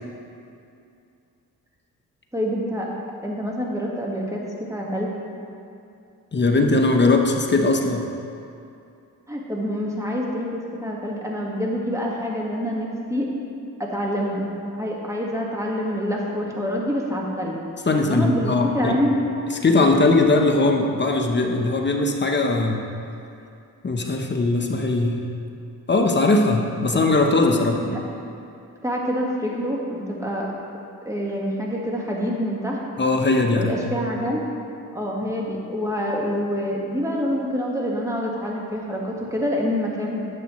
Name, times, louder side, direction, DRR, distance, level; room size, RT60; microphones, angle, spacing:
voice 1, 2.3-2.9 3.2-5.1 9.3-13.3 13.8-14.4 14.8-17.6 18.0-19.3 26.8-27.0 27.7-28.1 28.8-30.5 31.0-32.8 33.5-34.5 34.9-40.3, equal, 10° right, -2 dB, 1.6 m, -26 dB
voice 2, 6.3-8.1 17.9-19.0 19.6-22.8 23.8-25.2 25.9-27.8 33.0-34.0, left 2 dB, 30° left, 2 dB, 0.9 m, -20 dB
11.0 x 7.5 x 3.1 m, 2.6 s
cardioid pair, 75°, 34 cm